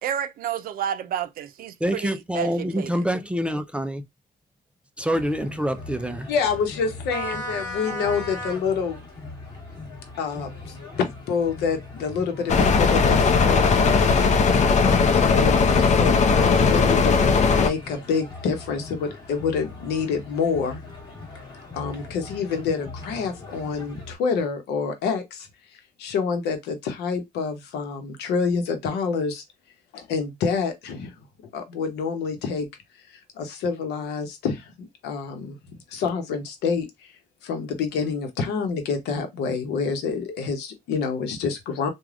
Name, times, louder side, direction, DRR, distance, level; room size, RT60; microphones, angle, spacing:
voice 1, 0.0-2.9, right 10 dB, 60° right, 0.5 m, -30 dB
voice 2, 1.8-4.0 5.0-6.3, equal, 5° right, 0.4 m, -26 dB
sound 1, 5.1-24.1, left 2 dB, 25° left, 1.3 m, -39 dB
voice 3, 6.3-9.1 10.2-14.1 14.8-20.8 21.7-25.5 26.0-29.4 29.9-31.1 31.5-32.7 33.4-35.6 35.9-37.1 37.4-41.9, left 5 dB, 80° left, 0.9 m, -27 dB
sound 2, 12.5-17.7, left 5 dB, 45° left, 0.6 m, -18 dB
3.2 x 2.3 x 2.3 m
cardioid pair, 110°, 17 cm